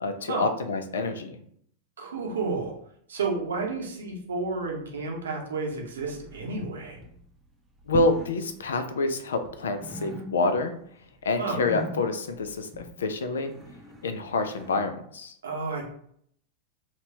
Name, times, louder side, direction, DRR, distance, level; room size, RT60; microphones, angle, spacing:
voice 1, 0.0-1.4 7.9-10.7 11.2-12.7 13.0-13.5 14.0-15.3, left 3 dB, 65° left, 8 dB, 0.4 m, -27 dB
voice 2, 2.0-2.7 3.1-7.0 11.4-11.6 15.4-15.9, right 3 dB, 65° right, 0 dB, 0.7 m, -31 dB
sound 1, 6.0-6.7 6.9-7.3 7.8-8.4 8.7-9.5 9.8-10.7 11.0-14.8, equal, 10° right, 0.6 m, -41 dB
4.0 x 2.2 x 2.8 m, 0.66 s
figure-of-eight pair, 90°, 0 cm